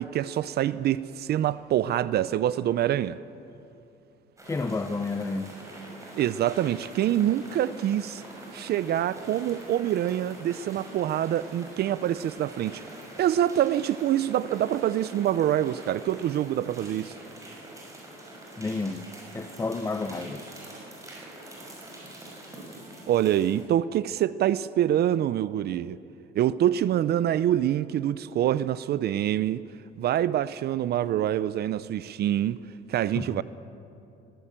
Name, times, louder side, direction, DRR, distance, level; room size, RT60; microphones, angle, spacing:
voice 1, 0.0-3.2 6.2-8.2 8.5-12.8 13.2-17.1 23.1-26.0 26.3-29.6 30.0-32.6 32.9-33.4, right 11 dB, 55° right, 0.5 m, -25 dB
voice 2, 4.4-5.6 18.6-19.1 19.3-20.6 33.2-33.4, left 3 dB, 15° left, 0.7 m, -31 dB
sound 1, 4.4-23.6, right 1 dB, 15° right, 6.0 m, -45 dB
20.0 x 17.0 x 8.9 m
cardioid pair, 125°, 20 cm